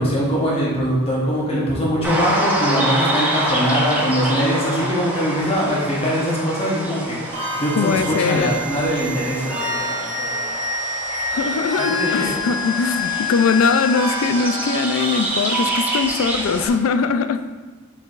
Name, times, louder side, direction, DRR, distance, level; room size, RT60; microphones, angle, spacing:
voice 1, 0.0-10.5 11.3-12.3, equal, 25° left, -5 dB, 0.9 m, -22 dB
sound 1, 2.0-16.7, right 1 dB, 5° right, 0.5 m, -27 dB
sound 2, 7.3-16.1, left 1 dB, 85° right, 1.3 m, -27 dB
voice 2, 7.8-8.6 11.3-17.4, left 5 dB, 75° left, 10 dB, 0.3 m, -21 dB
4.8 x 4.4 x 2.4 m, 1.3 s
head